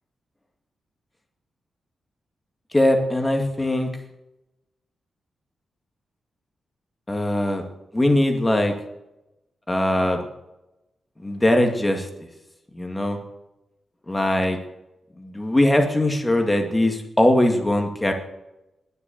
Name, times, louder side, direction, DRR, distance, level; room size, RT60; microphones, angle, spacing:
voice 1, 2.7-3.9 7.1-7.6 7.9-8.7 9.7-10.2 11.2-12.1 12.8-13.2 14.1-14.6 15.2-18.1, left 1 dB, 10° left, 4 dB, 2.2 m, -20 dB
20.5 x 6.9 x 7.0 m, 0.92 s
wide cardioid pair, 150°, 0 cm